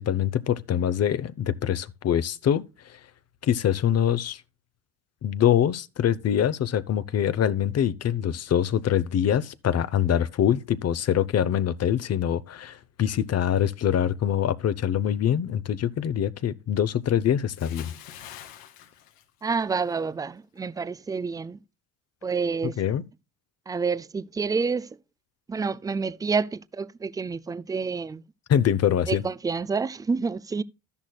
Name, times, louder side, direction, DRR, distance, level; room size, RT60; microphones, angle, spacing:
voice 1, 0.0-2.6 3.4-4.4 5.2-17.9 22.8-23.0 28.5-29.2, left 9 dB, 40° left, 0.8 m, -24 dB
Bathtub (filling or washing) / Splash splatter, 17.6-20.0 20.3-20.6, left 10 dB, 85° left, 2.1 m, -45 dB
voice 2, 19.4-21.6 22.2-22.8 23.7-25.0 25.5-28.2 29.0-30.6, right 5 dB, 10° right, 0.4 m, -28 dB
12.5 x 10.5 x 2.3 m
cardioid pair, 110°, 40 cm